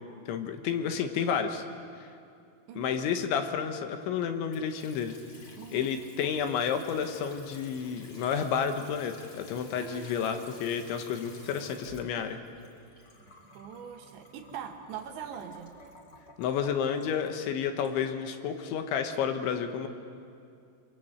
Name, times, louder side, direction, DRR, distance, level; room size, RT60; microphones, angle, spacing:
voice 1, 0.3-1.6 2.8-5.2 5.7-12.4 16.4-19.9, left 7 dB, 75° left, 6 dB, 3.4 m, -31 dB
voice 2, 2.7-3.1 5.6-6.0 9.8-10.2 13.5-15.7, right 8 dB, 70° right, 4 dB, 3.5 m, -42 dB
Water tap faucet / Sink (filling or washing) / Trickle dribble, 4.5-18.6, left 2 dB, 30° left, 2.6 m, -52 dB
28.0 x 23.0 x 8.0 m, 2.5 s
omnidirectional pair, 5.6 m